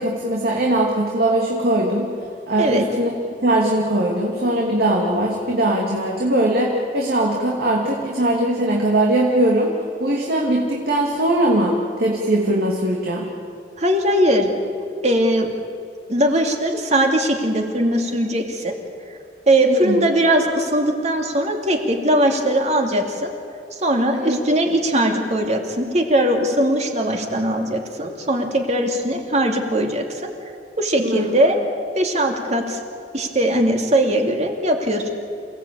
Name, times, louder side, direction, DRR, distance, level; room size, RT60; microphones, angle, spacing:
voice 1, 0.0-2.1 2.5-3.1 3.4-9.7 10.0-13.3 19.6-20.0 24.1-24.4 31.0-31.3, right 1 dB, 60° right, -1 dB, 2.6 m, -20 dB
voice 2, 13.8-14.5 15.0-15.5 16.1-18.8 19.5-23.3 23.8-30.3 30.8-31.6 31.9-32.8 33.1-35.1, right 1 dB, 40° right, 3 dB, 2.9 m, -20 dB
28.5 x 17.5 x 8.7 m, 2.6 s
head